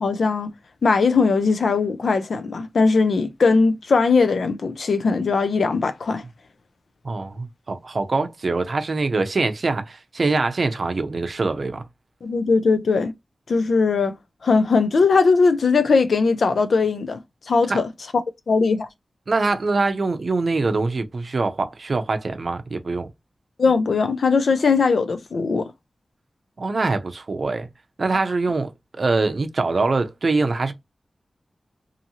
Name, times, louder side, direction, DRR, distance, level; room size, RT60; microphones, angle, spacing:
voice 1, 0.0-0.5 0.8-6.2 12.2-13.1 13.5-14.1 14.4-17.2 17.5-17.9 18.5-18.9 23.6-25.7, left 4 dB, 75° left, 0.5 m, -19 dB
voice 2, 7.0-11.8 17.7-17.8 19.3-23.1 26.6-27.7 28.0-28.7 29.0-30.7, right 3 dB, 55° right, 0.6 m, -23 dB
2.7 x 2.6 x 2.7 m
wide cardioid pair, 105°, 0 cm